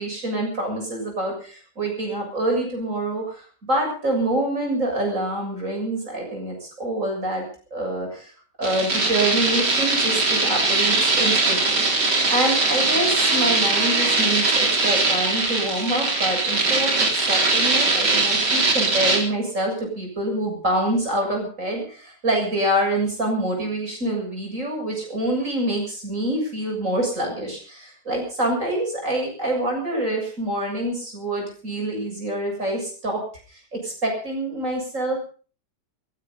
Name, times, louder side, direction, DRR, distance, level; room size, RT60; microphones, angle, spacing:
voice 1, 0.0-8.3 8.6-11.8 12.3-33.2 33.5-35.2, right 1 dB, 45° right, 1 dB, 7.6 m, -26 dB
sound 1, 8.6-19.2, right 3 dB, 75° right, 4.2 m, -21 dB
17.0 x 15.0 x 5.6 m, 0.42 s
omnidirectional pair, 1.9 m